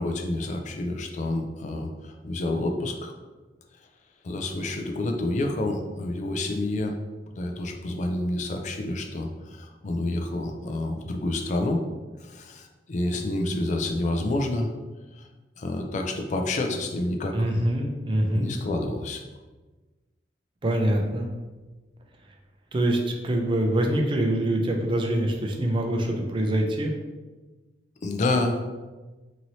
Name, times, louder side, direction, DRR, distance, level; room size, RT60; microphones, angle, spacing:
voice 1, 0.0-3.1 4.2-7.0 7.3-11.8 12.2-14.7 15.2-15.3 15.6-17.7 18.3-19.2 28.0-28.7, left 2 dB, 40° left, 3 dB, 0.4 m, -28 dB
voice 2, 17.3-18.5 20.6-21.3 22.7-26.9, right 1 dB, 30° right, 1 dB, 0.4 m, -24 dB
3.0 x 2.7 x 2.7 m, 1.2 s
head